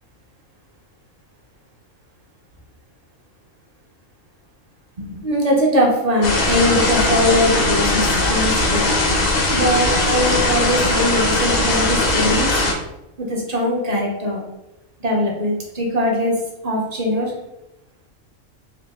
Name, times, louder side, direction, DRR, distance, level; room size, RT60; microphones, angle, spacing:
voice 1, 5.0-8.0 8.3-8.9 9.1-12.5 13.2-14.4 15.0-16.4 16.6-17.3, equal, 35° right, -1 dB, 0.7 m, -21 dB
sound 1, 6.2-12.7, left 2 dB, 45° left, 0.6 m, -19 dB
3.9 x 2.5 x 3.4 m, 0.93 s
omnidirectional pair, 1.4 m